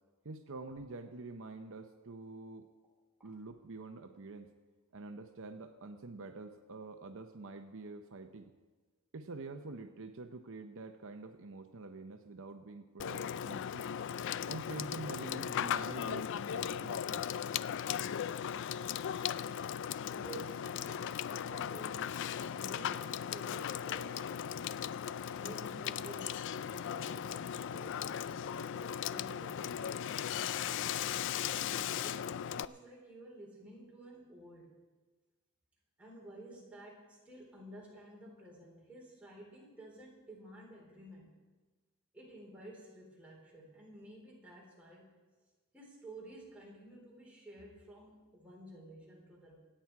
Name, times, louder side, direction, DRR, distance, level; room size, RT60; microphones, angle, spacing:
voice 1, 0.2-2.6 3.2-4.5 4.9-8.5 9.1-13.9 14.5-16.3 16.5-17.2, right 3 dB, 65° right, 7 dB, 0.8 m, -46 dB
Water / Water tap faucet / Sink (filling or washing), 13.0-32.7, left 9 dB, 55° left, 0.4 m, -37 dB
voice 2, 20.1-24.7 25.4-29.8 31.5-34.8 36.0-41.4 42.1-45.1 45.7-49.6, right 1 dB, 5° right, -4 dB, 3.9 m, -52 dB
25.5 x 8.8 x 4.7 m, 1.3 s
head